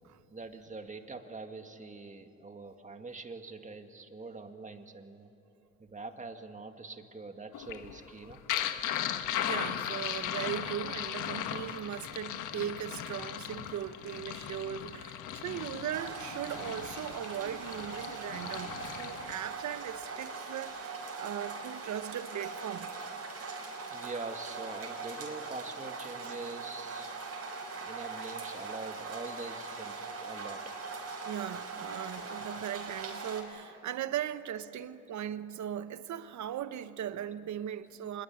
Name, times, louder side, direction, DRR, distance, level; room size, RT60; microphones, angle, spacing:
voice 1, 0.3-5.3 5.8-8.4 11.8-11.9 23.9-27.2 27.7-30.8, right 3 dB, 25° right, 2.1 m, -44 dB
sound 1, 7.5-19.3, left 10 dB, 90° left, 1.4 m, -37 dB
voice 2, 9.4-22.9 26.2-26.3 31.2-38.2, right 10 dB, 70° right, 1.1 m, -38 dB
sound 2, 15.9-33.4, right 4 dB, 55° right, 5.6 m, -41 dB
25.5 x 21.5 x 9.8 m
cardioid pair, 90°, 30 cm